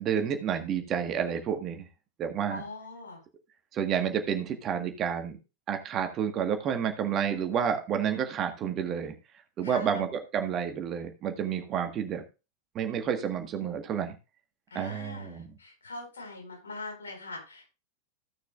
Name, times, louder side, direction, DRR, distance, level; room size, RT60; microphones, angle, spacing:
voice 1, 0.0-1.9 2.2-2.6 3.7-5.4 5.7-9.1 9.6-12.2 12.7-14.1 14.7-15.5, right 8 dB, 30° right, 5 dB, 1.6 m, -30 dB
voice 2, 2.5-3.2 9.6-10.0 14.7-17.7, left 3 dB, 70° left, 0 dB, 4.9 m, -42 dB
15.5 x 6.6 x 2.5 m, 0.29 s
figure-of-eight pair, 90°, 0 cm